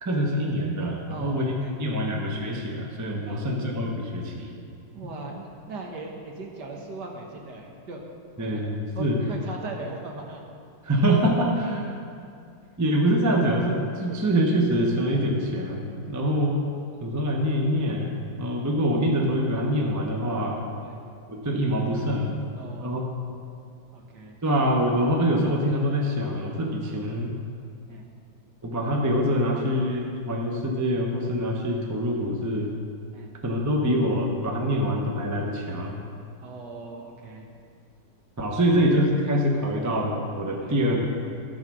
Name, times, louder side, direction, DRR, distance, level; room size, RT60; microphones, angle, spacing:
voice 1, 0.0-4.5 8.4-9.2 10.8-11.9 12.8-16.6 17.0-20.6 21.3-22.4 22.7-23.0 24.4-27.3 28.6-32.7 33.4-36.0 38.4-41.1, equal, 15° right, 0 dB, 0.6 m, -25 dB
voice 2, 1.1-2.0 3.2-3.5 4.9-8.0 8.5-8.7 8.9-10.4 14.1-14.2 20.8-21.0 22.5-22.9 23.9-24.4 26.8-27.0 27.9-28.0 33.1-33.3 36.4-37.5 40.6-40.8, right 3 dB, 65° right, 1 dB, 1.7 m, -39 dB
14.5 x 4.9 x 6.2 m, 2.4 s
omnidirectional pair, 2.1 m